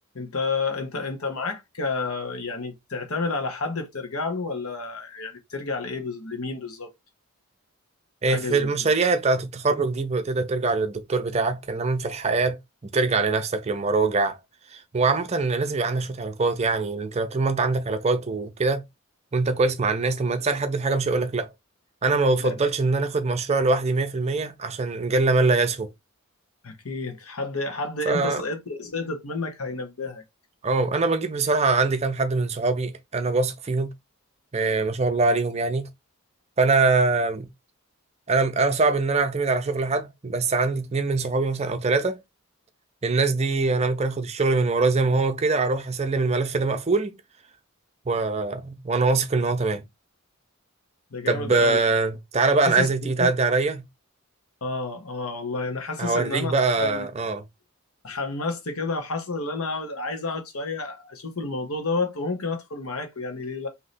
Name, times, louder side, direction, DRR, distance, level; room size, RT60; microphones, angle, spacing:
voice 1, 0.1-6.9 8.3-8.7 22.4-22.5 26.6-30.2 51.1-51.8 52.6-53.3 54.6-57.1 58.0-63.7, left 3 dB, 75° left, 1.1 m, -30 dB
voice 2, 8.2-12.6 12.9-14.4 14.7-18.8 19.3-21.5 22.0-25.9 28.1-28.4 30.6-33.9 34.5-35.9 36.6-37.5 38.3-42.2 43.0-47.1 48.1-49.8 51.3-53.9 56.0-57.4, right 3 dB, 30° right, 0.5 m, -23 dB
3.2 x 2.8 x 4.0 m
head